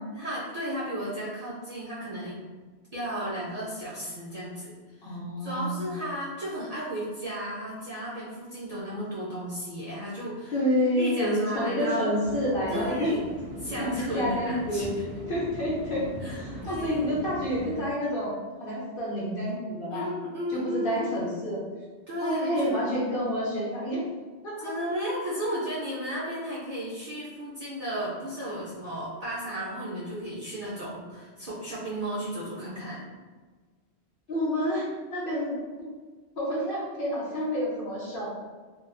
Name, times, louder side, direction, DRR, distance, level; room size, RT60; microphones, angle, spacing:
voice 1, 0.1-2.4 2.9-4.7 5.0-10.5 11.0-12.1 12.7-13.2 13.6-15.0 16.2-16.4 16.6-17.1 19.9-21.2 22.1-22.8 24.6-33.0, equal, 45° right, -10 dB, 0.5 m, -34 dB
voice 2, 5.0-5.9 10.5-13.1 13.6-14.9 15.3-18.3 18.6-20.0 20.5-21.6 22.2-24.0 24.4-24.7 34.3-35.6 36.4-38.3, equal, 60° left, -5 dB, 0.7 m, -29 dB
sound 1, 12.2-17.8, equal, 75° right, 0.8 m, -39 dB
2.3 x 2.3 x 2.4 m, 1.4 s
omnidirectional pair, 1.2 m